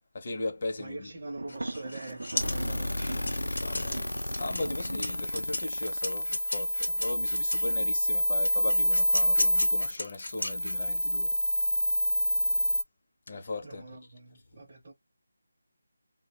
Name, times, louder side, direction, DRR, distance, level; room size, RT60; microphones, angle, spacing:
voice 1, 0.1-1.1 3.6-4.1 4.4-11.4 13.3-13.8, left 2 dB, 30° left, 0.5 m, -37 dB
voice 2, 0.8-4.1 13.6-14.9, right 2 dB, 30° right, 0.6 m, -44 dB
Thunder, 1.4-5.9, right 2 dB, 85° right, 0.5 m, -40 dB
sound 1, 1.5-7.7 8.4-11.0, left 2 dB, 65° left, 0.7 m, -36 dB
sound 2, 2.4-12.8, left 1 dB, 85° left, 0.4 m, -28 dB
2.3 x 2.0 x 2.9 m
figure-of-eight pair, 175°, 0 cm